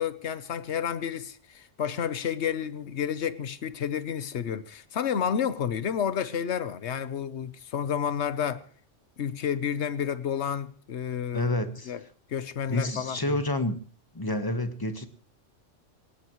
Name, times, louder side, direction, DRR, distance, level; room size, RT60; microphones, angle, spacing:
voice 1, 0.0-8.6 9.2-11.5 11.9-12.0 12.3-13.3, left 8 dB, 65° left, 1.2 m, -30 dB
voice 2, 11.3-11.9 12.7-13.8 14.1-15.1, left 1 dB, 20° left, 1.2 m, -29 dB
20.0 x 18.5 x 3.1 m
omnidirectional pair, 1.3 m